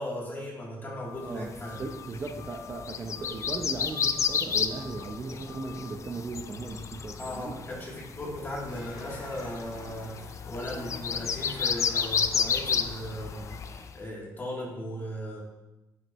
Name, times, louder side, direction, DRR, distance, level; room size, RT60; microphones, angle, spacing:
voice 1, 0.0-1.8 7.2-15.4, equal, 25° left, -5 dB, 3.0 m, -37 dB
sound 1, 0.8-1.3 1.6-2.1 2.4-2.9 3.1-3.6 3.9-4.4 4.7-5.2 5.5-5.9, left 12 dB, 60° left, 2.1 m, -48 dB
voice 2, 1.2-7.6, right 3 dB, 30° right, 3 dB, 0.8 m, -37 dB
sound 2, 1.5-13.9, left 6 dB, 45° left, 0.5 m, -32 dB
sound 3, 8.7-13.8, left 3 dB, 85° left, 2.1 m, -48 dB
9.4 x 7.6 x 3.1 m, 0.99 s
cardioid pair, 120°, 7 cm